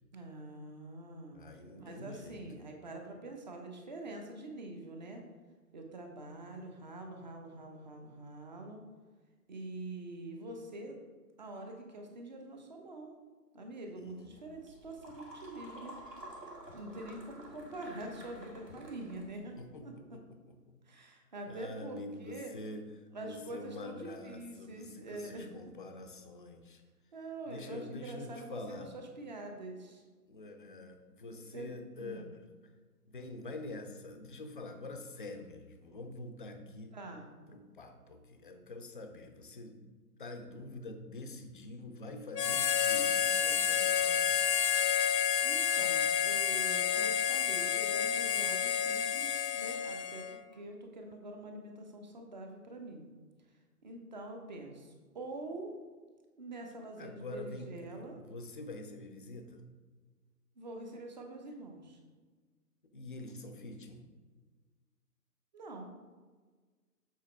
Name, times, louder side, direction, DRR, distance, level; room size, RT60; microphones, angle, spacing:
voice 1, 0.1-1.4 1.8-5.2 5.7-8.8 9.5-11.0 11.4-13.1 13.5-16.0 16.7-20.2 20.9-22.5 23.1-25.5 27.1-28.6 28.9-30.0 31.3-32.3 36.9-37.3 45.4-53.0 53.8-55.7 56.4-58.2 60.6-62.0 65.5-65.9, right 2 dB, 30° right, 3 dB, 0.7 m, -45 dB
voice 2, 1.3-2.7 14.0-14.3 19.6-20.2 20.5-20.6 21.5-22.9 23.2-26.8 27.5-28.9 30.3-32.3 33.1-36.9 37.5-39.8 40.2-44.6 57.0-57.7 58.0-59.6 62.9-64.0, left 2 dB, 35° left, 6 dB, 0.5 m, -46 dB
sound 1, 14.3-19.6, right 1 dB, 90° right, 2.1 m, -50 dB
Harmonica, 42.3-50.4, left 8 dB, 80° left, 0.6 m, -30 dB
7.4 x 4.1 x 4.3 m, 1.4 s
figure-of-eight pair, 135°, 48 cm